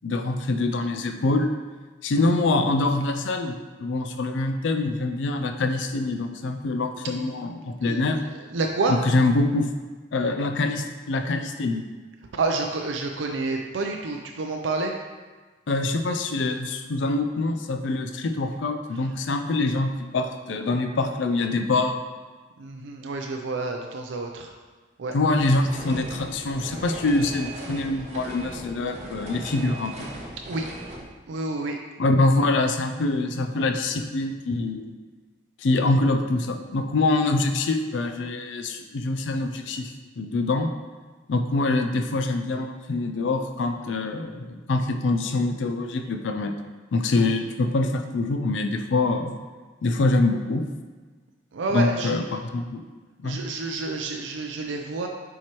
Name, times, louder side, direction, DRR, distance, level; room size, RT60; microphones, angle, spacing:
voice 1, 0.0-1.5 2.0-3.5 3.8-8.2 8.9-9.7 10.1-11.8 15.7-22.0 25.1-30.1 32.0-34.9 35.6-40.7 41.3-46.5 46.9-49.3 49.8-50.7 51.7-52.8 53.2-53.4, left 2 dB, 85° left, 6 dB, 0.4 m, -25 dB
voice 2, 8.5-9.0 12.3-14.9 22.6-24.5 25.0-25.1 30.4-30.7 31.3-31.8 51.5-52.1 53.2-55.1, right 3 dB, 90° right, 2 dB, 0.5 m, -28 dB
sound 1, 25.4-31.0, right 1 dB, 40° right, 1.0 m, -38 dB
7.3 x 4.6 x 3.0 m, 1.3 s
head